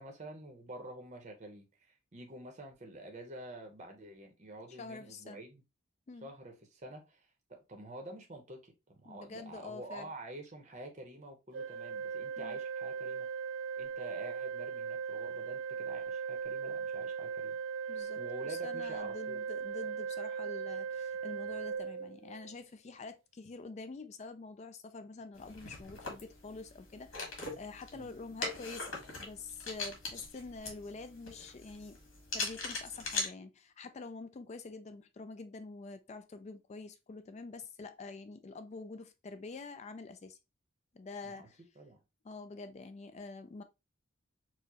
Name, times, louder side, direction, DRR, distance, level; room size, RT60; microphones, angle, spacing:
voice 1, 0.0-1.7 2.1-5.6 6.2-13.3 13.8-17.6 17.9-19.4 27.9-28.1 41.2-41.5 41.8-42.0, right 1 dB, 35° right, 0.7 m, -48 dB
voice 2, 4.8-5.4 6.1-6.3 9.1-10.1 12.4-12.6 17.9-32.0 32.3-40.4 40.9-41.6 42.2-43.6, left 3 dB, 35° left, 0.3 m, -47 dB
Organ, 11.5-22.6, right 6 dB, 65° right, 0.3 m, -38 dB
sound 1, 25.3-33.3, left 3 dB, 70° left, 1.3 m, -41 dB
4.6 x 2.1 x 2.8 m
head